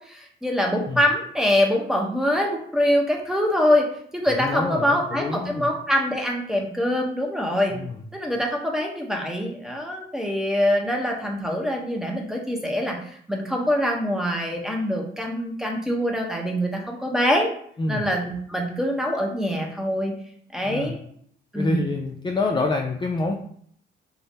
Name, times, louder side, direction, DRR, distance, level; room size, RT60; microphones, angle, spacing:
voice 1, 0.1-3.9 4.1-7.7 8.1-17.5 17.9-20.1 20.5-21.1 21.5-21.9, equal, 5° right, 0 dB, 0.8 m, -24 dB
voice 2, 4.4-5.7 7.7-8.0 17.8-18.0 20.6-21.0 21.5-23.4, left 3 dB, 25° left, 2 dB, 0.4 m, -27 dB
3.5 x 2.0 x 4.1 m, 0.62 s
cardioid pair, 90°, 20 cm